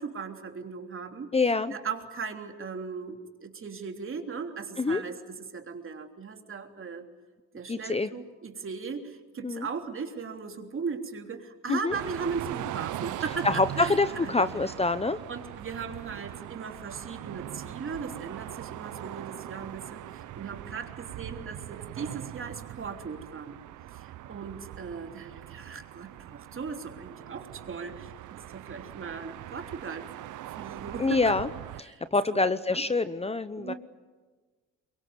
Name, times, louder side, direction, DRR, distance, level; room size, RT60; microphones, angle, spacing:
voice 1, 0.0-1.3 1.7-7.1 7.5-14.3 15.3-23.6 24.0-30.0 30.5-31.4 31.9-32.0 32.3-32.8 33.6-33.7, right 5 dB, 45° right, 4 dB, 3.4 m, -38 dB
voice 2, 1.3-1.7 4.8-5.0 7.7-8.1 9.4-9.7 11.7-12.0 13.4-15.2 31.0-31.5 31.8-33.7, left 3 dB, 20° left, 13 dB, 0.9 m, -26 dB
sound 1, 11.9-31.8, right 13 dB, 80° right, 0.9 m, -41 dB
23.5 x 22.5 x 9.6 m, 1.3 s
cardioid pair, 90°, 30 cm